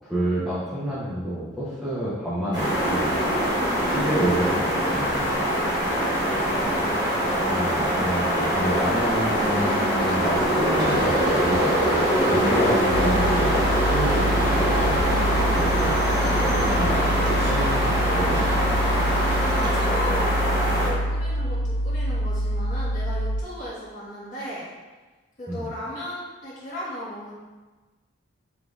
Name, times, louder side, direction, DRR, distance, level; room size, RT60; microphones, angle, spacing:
voice 1, 0.0-3.6 3.9-5.3 7.5-15.3 15.5-18.8 25.5-25.7, right 1 dB, ahead, -11 dB, 0.6 m, -29 dB
sound 1, 2.5-20.9, equal, 20° right, 1.2 m, -23 dB
voice 2, 3.5-4.2 6.0-6.9 16.3-17.0 19.3-24.7 25.4-27.3, equal, 40° left, -8 dB, 1.4 m, -36 dB
sound 2, 10.8-19.7, right 1 dB, 55° right, 0.9 m, -33 dB
sound 3, 12.9-23.4, equal, 75° left, 0.4 m, -26 dB
5.0 x 3.7 x 2.4 m, 1.3 s
head